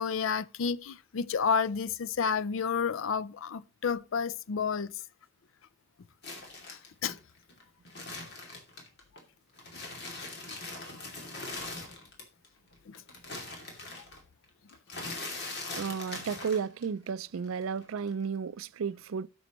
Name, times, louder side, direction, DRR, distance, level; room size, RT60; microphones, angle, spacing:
voice 1, 0.0-4.9 6.7-7.2 12.9-13.0, left 6 dB, 70° left, 0.5 m, -30 dB
sound 1, 6.2-9.2 9.5-12.5 12.7-17.1 17.3-18.2, left 2 dB, 50° left, 2.5 m, -41 dB
voice 2, 15.7-19.3, right 6 dB, 80° right, 0.4 m, -33 dB
18.0 x 6.2 x 3.0 m
head